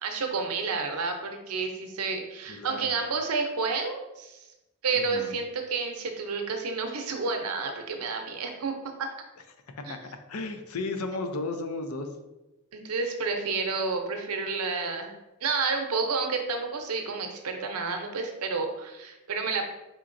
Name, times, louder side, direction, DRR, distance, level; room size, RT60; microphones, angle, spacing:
voice 1, 0.0-4.4 4.8-9.1 9.9-10.0 12.7-15.2 15.4-19.6, right 4 dB, 90° right, 4 dB, 0.7 m, -30 dB
voice 2, 2.6-2.9 4.9-5.3 9.9-10.0 10.3-12.1, left 3 dB, 85° left, 6 dB, 0.6 m, -34 dB
4.4 x 3.7 x 2.6 m, 1.0 s
head